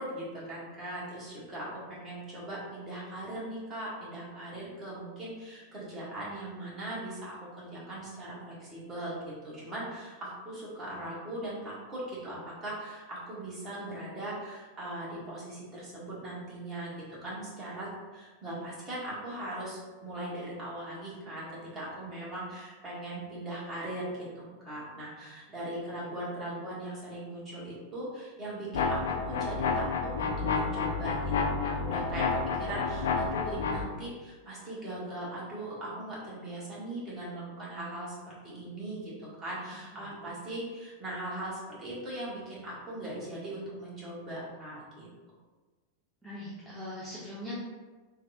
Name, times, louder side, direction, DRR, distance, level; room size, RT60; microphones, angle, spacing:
voice 1, 0.0-16.9 17.2-31.3 31.6-45.1, right 1 dB, 25° right, -7 dB, 1.2 m, -39 dB
sound 1, 28.7-33.9, left 4 dB, 60° left, 0.3 m, -30 dB
voice 2, 46.2-47.5, left 1 dB, ahead, -10 dB, 0.7 m, -42 dB
3.3 x 2.2 x 2.7 m, 1.3 s
figure-of-eight pair, 90°, 0 cm